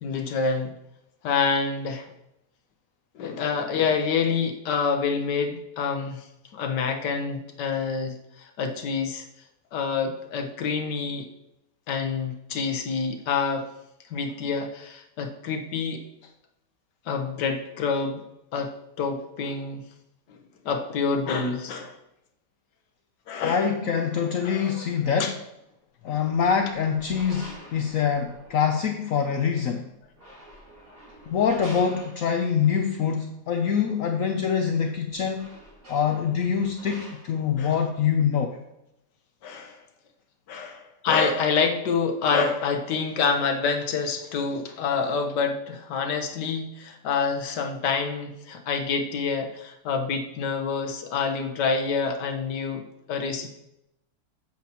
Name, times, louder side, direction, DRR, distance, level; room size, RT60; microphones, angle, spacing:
voice 1, 0.0-0.7 1.2-2.1 3.1-6.2 6.5-9.2 9.7-11.3 11.9-13.7 14.1-16.0 17.1-18.2 18.5-19.8 20.3-20.4 20.6-22.0 23.3-23.7 24.4-24.8 25.2-25.3 37.6-37.8 39.4-39.8 40.5-53.6, left 5 dB, 80° left, 5 dB, 1.6 m, -27 dB
voice 2, 23.4-25.3 26.0-29.9 31.3-35.5 35.9-38.6, left 7 dB, 65° left, 5 dB, 0.9 m, -25 dB
sound 1, 26.3-28.9 30.0-32.6 34.6-34.7 35.0-37.5, equal, 80° right, 4.0 m, -47 dB
9.1 x 7.5 x 2.9 m, 0.84 s
omnidirectional pair, 1.8 m